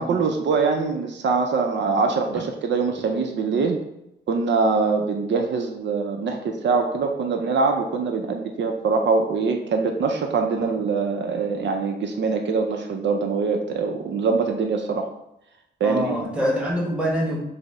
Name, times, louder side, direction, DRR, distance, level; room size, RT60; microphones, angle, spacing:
voice 1, 0.0-3.8 4.3-15.1 15.8-16.2, right 4 dB, 70° right, 4 dB, 0.5 m, -23 dB
voice 2, 15.8-17.4, equal, 5° right, -3 dB, 1.3 m, -25 dB
5.1 x 2.0 x 4.8 m, 0.84 s
wide cardioid pair, 115°, 19 cm